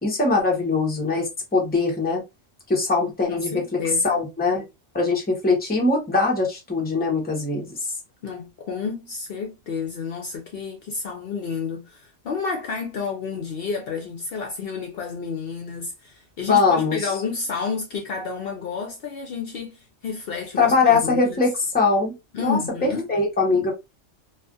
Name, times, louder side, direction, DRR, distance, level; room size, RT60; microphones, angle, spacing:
voice 1, 0.0-2.2 2.7-3.8 4.0-4.6 4.9-7.8 16.5-17.0 20.6-23.7, left 3 dB, 10° left, 0.7 m, -22 dB
voice 2, 3.3-4.2 8.2-21.4 22.3-23.1, left 5 dB, 65° left, 0.7 m, -30 dB
2.4 x 2.3 x 2.4 m
omnidirectional pair, 1.2 m